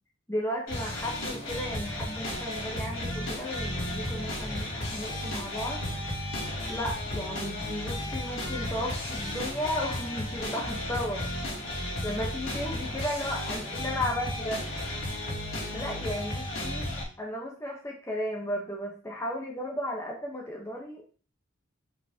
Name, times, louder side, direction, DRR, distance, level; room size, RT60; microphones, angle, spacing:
voice 1, 0.3-5.8 6.7-11.3 12.0-14.6 15.7-21.1, left 1 dB, 15° left, -1 dB, 1.0 m, -34 dB
sound 1, 0.7-17.0, left 1 dB, 90° left, 2.8 m, -34 dB
5.9 x 5.7 x 2.8 m, 0.39 s
head